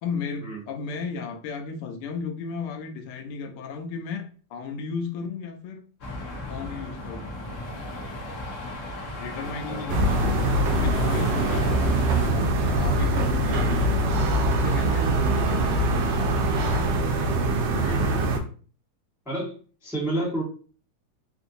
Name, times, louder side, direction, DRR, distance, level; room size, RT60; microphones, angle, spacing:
voice 1, 0.0-5.8 6.5-7.3 9.2-11.8 12.3-14.0 14.5-16.1, left 5 dB, 90° left, 1.5 m, -34 dB
sound 1, 6.0-12.3, left 1 dB, 65° left, 0.8 m, -35 dB
sound 2, 9.9-18.4, right 1 dB, 70° right, 1.1 m, -23 dB
voice 2, 17.7-18.5 19.3-19.5 19.8-20.4, right 1 dB, 5° right, 0.3 m, -31 dB
3.7 x 2.5 x 2.6 m
omnidirectional pair, 2.3 m